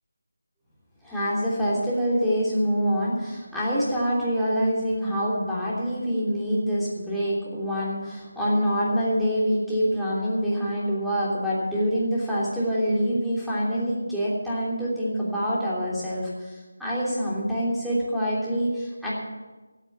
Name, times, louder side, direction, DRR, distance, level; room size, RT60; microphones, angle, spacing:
voice 1, 1.0-19.1, equal, ahead, -11 dB, 3.1 m, -25 dB
15.5 x 9.1 x 7.4 m, 1.2 s
figure-of-eight pair, 165°, 0 cm